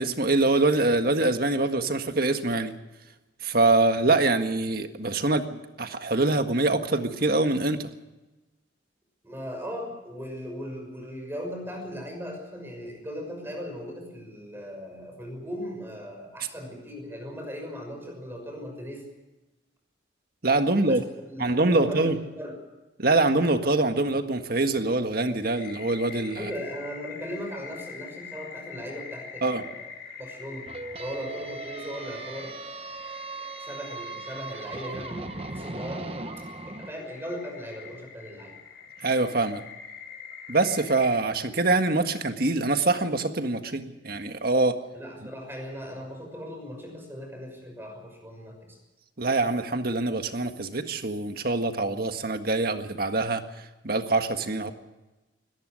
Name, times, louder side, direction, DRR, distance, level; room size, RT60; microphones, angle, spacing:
voice 1, 0.0-2.7 3.4-7.9 20.4-21.0 21.4-22.2 23.0-26.5 29.4-29.6 39.0-39.6 40.5-44.8 49.2-53.4 53.8-54.7, right 2 dB, 50° right, 7 dB, 1.7 m, -24 dB
voice 2, 9.2-19.0 20.7-21.0 21.3-22.6 26.4-30.7 31.0-32.6 33.3-36.1 36.7-38.5 44.9-48.8, equal, 10° right, 3 dB, 6.1 m, -38 dB
sound 1, 25.3-41.2, left 7 dB, 55° left, 4.5 m, -45 dB
sound 2, 30.7-36.9, right 3 dB, 30° right, 1.0 m, -38 dB
23.5 x 18.5 x 6.5 m, 1.1 s
head